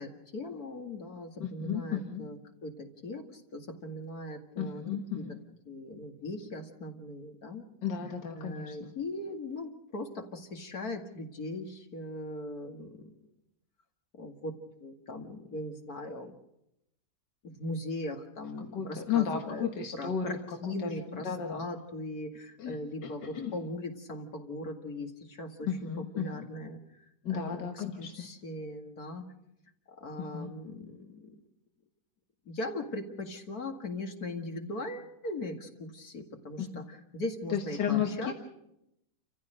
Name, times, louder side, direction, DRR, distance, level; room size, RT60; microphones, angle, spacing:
voice 1, 0.0-4.8 5.1-5.2 5.7-7.6 8.4-13.1 14.2-16.3 17.4-19.7 19.9-25.9 26.2-26.8 27.3-29.2 29.9-31.4 32.5-36.8 37.1-38.3, left 2 dB, 60° left, 3 dB, 2.6 m, -39 dB
voice 2, 1.4-2.3 4.6-5.4 7.8-8.9 18.7-20.4 20.6-21.6 22.6-23.6 25.7-26.5 27.2-28.3 30.2-30.5 36.6-36.9 37.5-38.3, left 8 dB, 85° left, 3 dB, 2.2 m, -34 dB
29.5 x 15.0 x 6.6 m, 0.83 s
omnidirectional pair, 1.8 m